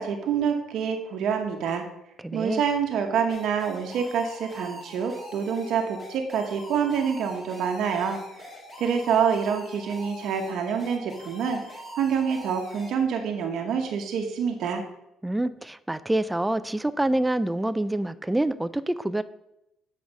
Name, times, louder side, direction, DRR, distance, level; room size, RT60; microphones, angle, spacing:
voice 1, 0.0-1.8 2.3-8.2 8.8-11.6 12.0-14.8, right 7 dB, 60° right, 4 dB, 0.9 m, -26 dB
voice 2, 2.2-2.6 15.2-19.2, right 1 dB, 5° right, 13 dB, 0.3 m, -26 dB
sound 1, 3.3-12.9, equal, 20° left, 1.7 m, -43 dB
7.9 x 4.8 x 5.3 m, 0.87 s
cardioid pair, 150°, 0 cm